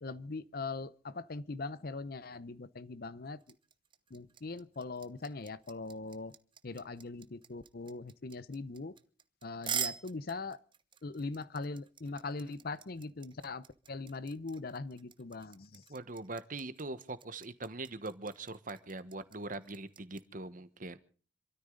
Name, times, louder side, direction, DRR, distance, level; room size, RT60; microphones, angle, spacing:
voice 1, 0.0-3.4 4.1-6.3 6.6-9.0 9.4-10.6 11.0-15.8, left 3 dB, 50° left, 0.7 m, -41 dB
sound 1, 3.4-20.2, right 8 dB, 25° right, 0.8 m, -43 dB
voice 2, 15.9-21.0, right 2 dB, 45° right, 1.2 m, -42 dB
27.5 x 13.0 x 3.9 m
head